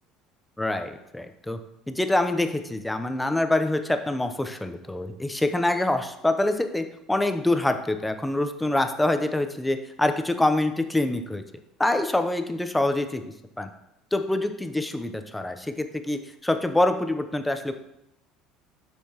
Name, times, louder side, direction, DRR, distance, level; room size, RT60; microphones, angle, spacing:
voice 1, 0.6-1.6 1.9-11.4 11.8-13.2 13.6-13.7 14.1-17.7, left 1 dB, 10° left, 8 dB, 0.8 m, -25 dB
10.0 x 6.3 x 3.0 m, 0.83 s
hypercardioid pair, 70°, 0 cm